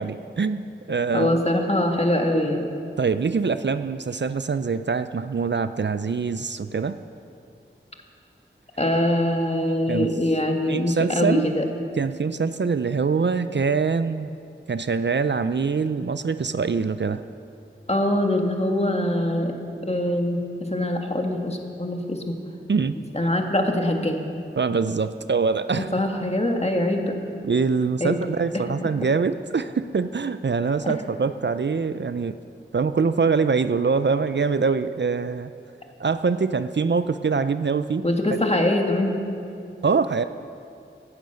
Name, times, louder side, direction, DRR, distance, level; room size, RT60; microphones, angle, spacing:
voice 1, 0.0-1.4 3.0-7.0 9.9-10.2 10.7-11.5 12.0-14.3 14.7-17.2 22.7-23.0 24.6-25.9 27.4-32.4 32.7-35.5 36.0-38.1 39.8-40.2, right 5 dB, 60° right, 12 dB, 0.5 m, -24 dB
voice 2, 1.1-2.7 8.8-11.6 17.9-19.5 19.9-20.4 20.7-22.3 23.1-24.2 25.9-27.1 28.0-28.2 30.8-30.9 38.0-39.2, left 1 dB, 30° left, 2 dB, 1.8 m, -23 dB
17.0 x 10.5 x 6.5 m, 2.5 s
wide cardioid pair, 45°, 21 cm